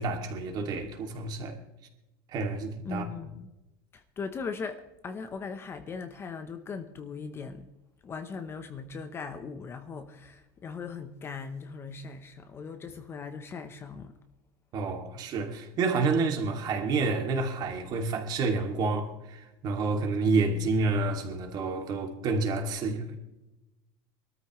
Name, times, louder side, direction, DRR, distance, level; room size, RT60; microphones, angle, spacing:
voice 1, 0.0-1.6 2.3-3.1 14.7-23.2, right 3 dB, 35° right, 2.5 m, -29 dB
voice 2, 2.8-3.5 3.9-7.7 8.0-14.2, left 5 dB, 20° left, 0.9 m, -39 dB
23.5 x 13.5 x 3.1 m
supercardioid pair, 160°, 11 cm